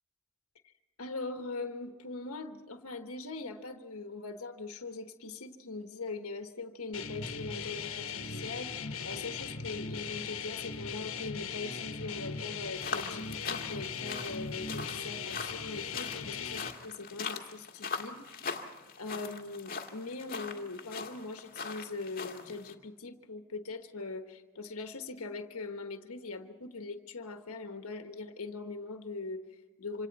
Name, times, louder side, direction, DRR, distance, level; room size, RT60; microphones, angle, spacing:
voice 1, 1.0-18.7 19.0-30.1, left 3 dB, 80° left, 7 dB, 1.3 m, -41 dB
sound 1, 6.9-16.7, left 5 dB, 65° left, 1.5 m, -39 dB
sound 2, 12.8-22.7, left 5 dB, 40° left, 1.8 m, -41 dB
26.5 x 26.5 x 4.1 m, 1.3 s
head